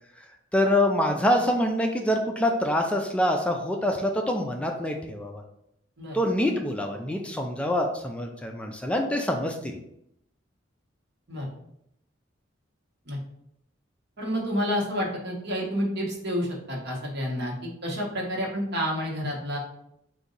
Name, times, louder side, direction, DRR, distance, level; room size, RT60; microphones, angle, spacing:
voice 1, 0.5-5.4 6.1-9.8, left 1 dB, 5° left, 2 dB, 0.3 m, -25 dB
voice 2, 14.2-19.6, equal, 60° right, -2 dB, 1.2 m, -29 dB
4.0 x 2.6 x 3.9 m, 0.76 s
head